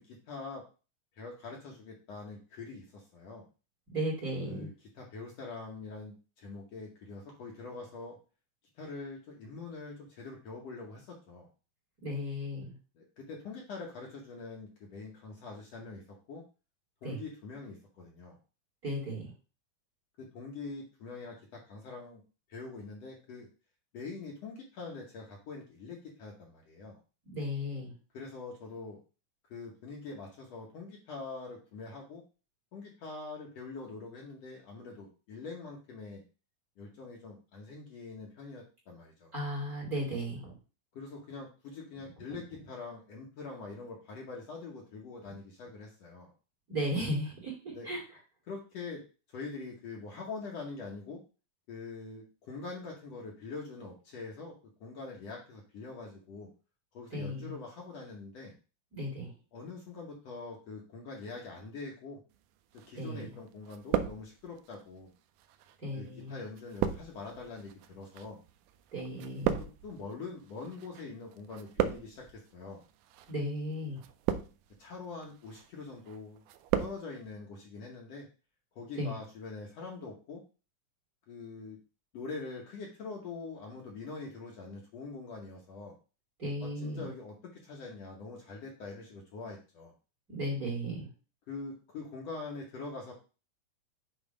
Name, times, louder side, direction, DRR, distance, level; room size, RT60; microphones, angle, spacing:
voice 1, 0.1-0.6 1.2-3.4 4.5-8.2 8.8-11.5 13.0-16.0 16.3-16.4 17.0-18.4 20.2-22.2 22.5-23.5 23.9-27.0 28.1-29.0 29.5-32.2 32.7-36.2 36.8-39.3 40.9-46.3 47.7-47.9 48.5-49.0 49.3-51.2 51.7-54.5 54.8-56.5 56.9-58.5 59.5-62.2 62.9-65.1 65.9-68.4 69.6-72.8 74.8-76.4 76.8-78.3 78.8-80.4 81.3-81.8 82.1-85.9 86.6-89.9 91.5-93.1, left 3 dB, 60° left, -1 dB, 1.9 m, -44 dB
voice 2, 3.9-4.7 12.0-12.7 17.0-17.2 18.8-19.3 27.3-27.9 39.3-40.5 46.7-48.0 57.1-57.5 58.9-59.3 62.9-63.2 65.8-66.4 68.9-69.6 73.3-74.0 79.0-79.2 86.4-87.1 90.3-91.1, equal, 30° right, -3 dB, 2.2 m, -35 dB
sound 1, 62.8-63.4 63.6-64.7 65.4-71.0 71.3-72.3 73.0-73.3 74.0-74.8 75.2-75.7 76.1-77.0 77.3-77.4, right 10 dB, 80° right, 1.9 m, -34 dB
7.2 x 3.2 x 4.9 m, 0.34 s
omnidirectional pair, 3.7 m